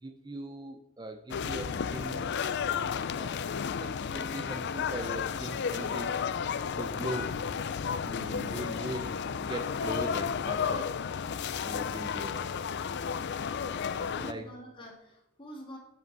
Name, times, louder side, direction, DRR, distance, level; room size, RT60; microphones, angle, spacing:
voice 1, 0.0-2.3 3.1-3.5 3.8-6.1 6.8-7.3 8.0-11.2 11.6-12.4 14.2-14.5, right 1 dB, 20° right, 6 dB, 0.5 m, -40 dB
sound 1, 1.3-14.3, left 6 dB, 50° left, 0.4 m, -33 dB
voice 2, 8.0-8.4 13.9-15.8, equal, 25° left, -1 dB, 2.3 m, -49 dB
7.9 x 7.9 x 4.7 m, 0.90 s
head